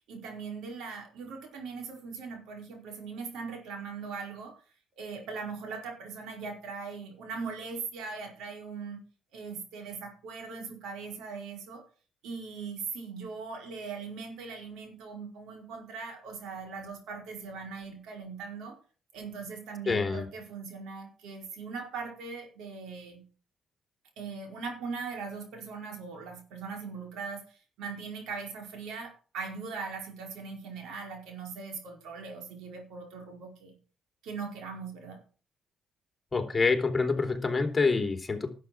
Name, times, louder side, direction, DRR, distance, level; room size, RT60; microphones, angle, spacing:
voice 1, 0.1-4.6 5.0-9.0 9.3-11.8 12.2-18.8 19.1-23.2 24.2-33.7 34.2-35.2, right 5 dB, 90° right, 3 dB, 4.8 m, -40 dB
voice 2, 19.9-20.3 36.3-38.5, left 4 dB, 25° left, 5 dB, 3.3 m, -26 dB
11.5 x 8.4 x 6.2 m, 0.37 s
cardioid pair, 90°, 0 cm